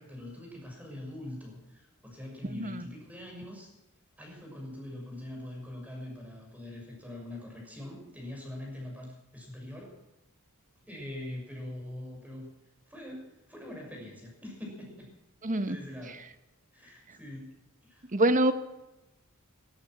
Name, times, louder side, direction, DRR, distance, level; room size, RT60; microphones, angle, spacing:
voice 1, 0.0-3.7 4.2-10.0 10.9-12.5 12.9-15.1 15.7-16.2 16.7-17.6 17.8-18.1, left 1 dB, 5° right, 0 dB, 6.5 m, -43 dB
voice 2, 2.5-2.9 15.4-15.8 18.1-18.5, right 1 dB, 35° right, 11 dB, 1.3 m, -25 dB
16.5 x 13.5 x 6.1 m, 0.95 s
head